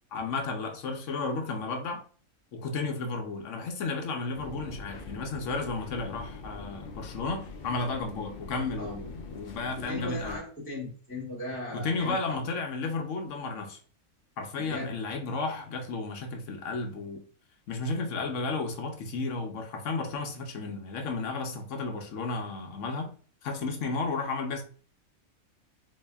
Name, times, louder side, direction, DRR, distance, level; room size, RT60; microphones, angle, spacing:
voice 1, 0.1-2.0 2.5-10.4 11.7-13.8 14.4-17.2 17.7-23.1 23.4-24.6, left 3 dB, 65° left, 1.0 m, -33 dB
sound 1, 4.3-10.4, left 4 dB, 85° left, 0.4 m, -43 dB
voice 2, 9.7-12.4 14.6-14.9, left 1 dB, 10° left, 1.4 m, -37 dB
4.0 x 2.7 x 2.2 m
omnidirectional pair, 1.4 m